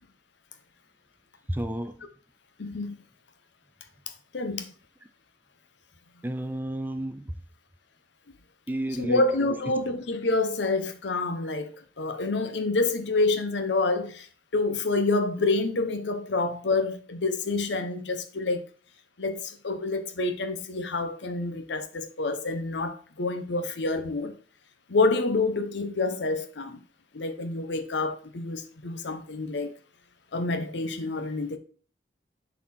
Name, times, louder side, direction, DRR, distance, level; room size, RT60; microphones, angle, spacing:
voice 1, 1.5-2.0 6.2-7.3 8.7-9.3, right 1 dB, 10° right, 0.4 m, -31 dB
voice 2, 2.6-3.0 4.3-4.7 9.0-14.3 14.5-18.6 19.2-24.4 24.9-26.8 27.1-29.8 30.3-31.6, left 3 dB, 70° left, 0.8 m, -27 dB
7.3 x 4.2 x 4.2 m
head